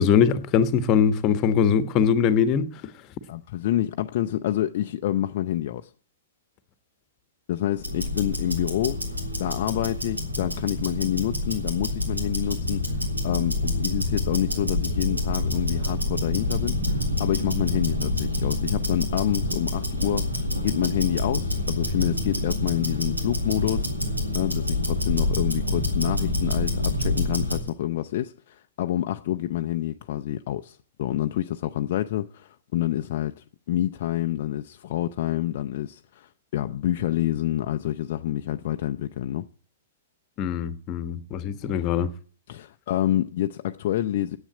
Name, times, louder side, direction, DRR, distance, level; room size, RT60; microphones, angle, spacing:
voice 1, 0.0-2.7 40.4-42.1, left 7 dB, 30° left, 1.2 m, -22 dB
voice 2, 3.3-5.9 7.5-9.0 9.4-39.4 42.5-44.4, left 12 dB, 50° left, 0.6 m, -28 dB
Tick-tock, 7.8-27.7, left 2 dB, 85° right, 3.3 m, -27 dB
10.0 x 8.2 x 8.8 m
figure-of-eight pair, 110°, 0 cm